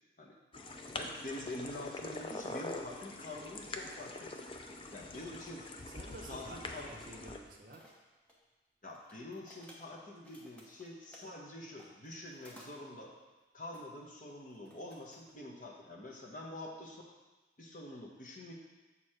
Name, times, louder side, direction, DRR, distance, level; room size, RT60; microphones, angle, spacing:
sound 1, 0.5-7.4, left 2 dB, 30° left, 0.4 m, -44 dB
voice 1, 0.9-4.3 4.9-5.6 6.3-6.9 8.8-13.1 13.5-17.0 17.6-18.5, left 1 dB, 45° left, -1 dB, 1.1 m, -46 dB
voice 2, 5.9-7.9, right 1 dB, 45° right, 1 dB, 0.8 m, -51 dB
sound 2, 7.5-8.4 8.8-11.2 11.8-12.7 13.7-13.8 14.3-15.3, equal, 5° left, 0.9 m, -58 dB
7.2 x 4.6 x 4.9 m, 1.2 s
head